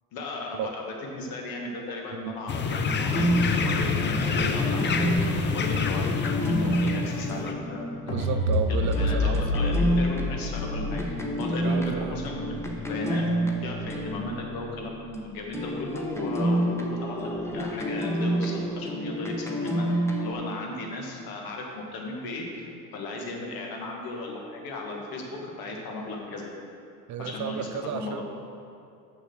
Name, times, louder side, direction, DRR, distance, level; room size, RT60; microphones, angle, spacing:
voice 1, 0.1-0.8 1.1-8.3 8.7-13.2 13.6-22.7 22.9-26.5 27.2-27.7 27.9-28.2, left 2 dB, 50° left, 0 dB, 2.0 m, -36 dB
sound 1, 2.5-7.5, left 5 dB, 25° left, 0.7 m, -27 dB
sound 2, 3.1-15.2 15.5-20.3, right 1 dB, 5° left, 1.2 m, -29 dB
sound 3, 8.1-14.4, left 2 dB, 75° left, 2.0 m, -29 dB
voice 2, 8.1-9.5 11.5-12.1 27.1-28.2, right 8 dB, 40° right, 8 dB, 0.7 m, -33 dB
6.7 x 6.5 x 6.3 m, 2.6 s
hypercardioid pair, 75°, 44 cm